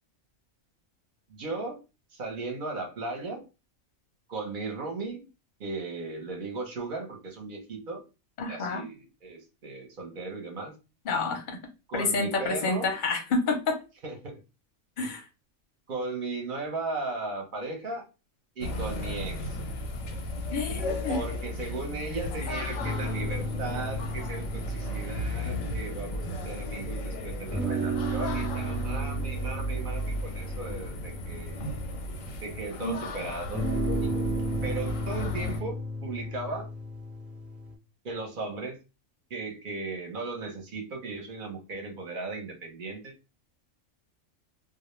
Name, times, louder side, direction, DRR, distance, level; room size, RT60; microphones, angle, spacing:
voice 1, 1.3-1.8 2.1-3.4 4.3-5.3 5.6-8.0 8.5-10.7 11.9-12.9 14.0-14.4 15.9-18.0 18.6-19.6 21.1-31.6 32.4-33.7 34.0-34.1 34.6-36.7 38.0-38.8 39.3-43.1, right 3 dB, 50° right, 2 dB, 0.8 m, -36 dB
voice 2, 8.4-8.9 11.1-11.6 11.9-13.7 15.0-15.2 20.5-21.2 32.8-32.9, left 3 dB, 50° left, 4 dB, 0.7 m, -28 dB
sound 1, 18.6-35.6, left 1 dB, 90° left, 1.0 m, -34 dB
sound 2, 22.8-26.7 27.5-32.6 33.5-37.7, right 2 dB, ahead, 0.4 m, -34 dB
2.2 x 2.1 x 3.0 m, 0.29 s
omnidirectional pair, 1.3 m